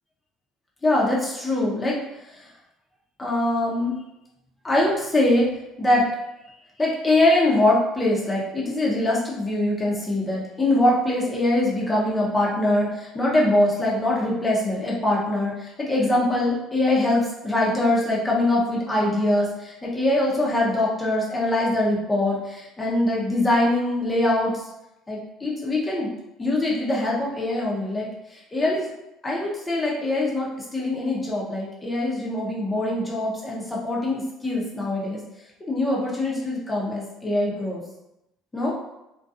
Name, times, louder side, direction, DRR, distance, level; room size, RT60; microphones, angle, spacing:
voice 1, 0.8-2.0 2.3-2.4 3.2-3.9 4.6-5.5 5.8-6.0 6.8-24.6 25.1-26.1 26.4-28.9 29.2-35.2 35.7-37.8 38.5-38.7, left 1 dB, 20° left, -4 dB, 0.7 m, -23 dB
2.4 x 2.2 x 2.6 m, 0.88 s
supercardioid pair, 90°, 0 cm